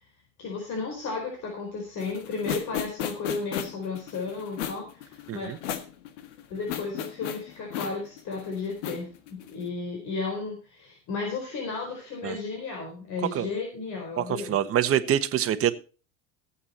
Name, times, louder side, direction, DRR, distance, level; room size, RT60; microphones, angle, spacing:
voice 1, 0.4-5.5 6.5-14.5, left 4 dB, 50° left, 1 dB, 4.5 m, -34 dB
sound 1, 2.0-9.6, left 10 dB, 90° left, 1.7 m, -35 dB
voice 2, 5.3-5.6 12.2-12.4 13.3-13.5 14.2-15.7, right 10 dB, 40° right, 11 dB, 1.3 m, -25 dB
15.5 x 8.5 x 4.4 m, 0.36 s
supercardioid pair, 110°, 35 cm